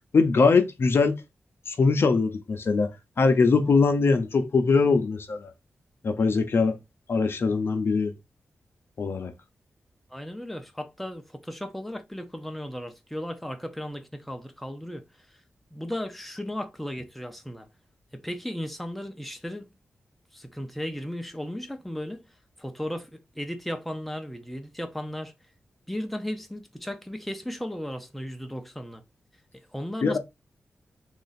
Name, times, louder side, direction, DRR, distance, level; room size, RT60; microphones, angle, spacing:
voice 1, 0.1-1.2 1.7-2.9 3.2-5.5 6.0-6.7 7.1-8.1 9.0-9.3 30.0-30.2, left 4 dB, 60° left, 0.6 m, -22 dB
voice 2, 10.1-15.4 15.7-17.7 18.1-19.7 20.3-22.2 22.6-25.3 25.9-29.0 29.7-30.2, equal, ahead, 0.6 m, -35 dB
3.0 x 2.5 x 4.0 m
cardioid pair, 70°, 4 cm